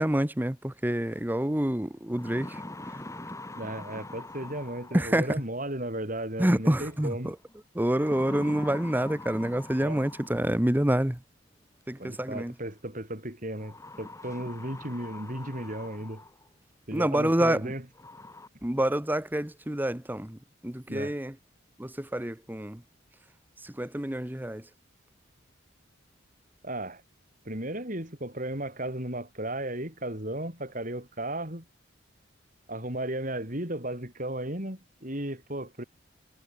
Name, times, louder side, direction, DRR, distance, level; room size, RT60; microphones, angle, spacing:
voice 1, 0.0-2.6 4.9-5.4 6.4-7.4 7.7-11.2 11.9-12.5 16.9-17.7 18.6-20.4 20.6-21.3 21.8-22.8 23.6-24.6, right 1 dB, 10° right, 0.8 m, -27 dB
sound 1, 1.3-1.4 1.9-5.3 6.7-7.1 7.9-10.7 12.0-12.1 13.6-16.5 17.0-17.1 17.6-17.7 18.0-18.5, left 2 dB, 15° left, 6.0 m, -43 dB
voice 2, 3.5-7.3 9.8-10.0 12.0-16.2 16.9-17.8 20.9-21.1 26.6-27.0 27.4-31.6 32.7-35.8, right 1 dB, 40° right, 6.6 m, -35 dB
head